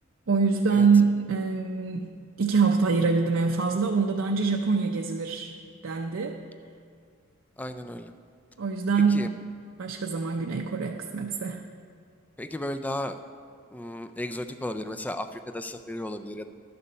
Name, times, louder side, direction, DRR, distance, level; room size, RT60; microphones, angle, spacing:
voice 1, 0.3-5.5 5.8-6.4 8.6-9.3 9.8-11.6, right 4 dB, 80° right, 2 dB, 0.5 m, -24 dB
voice 2, 7.6-8.1 9.1-9.3 12.4-13.2 13.7-16.5, left 1 dB, 10° left, 9 dB, 0.3 m, -34 dB
11.0 x 6.9 x 5.4 m, 2.3 s
head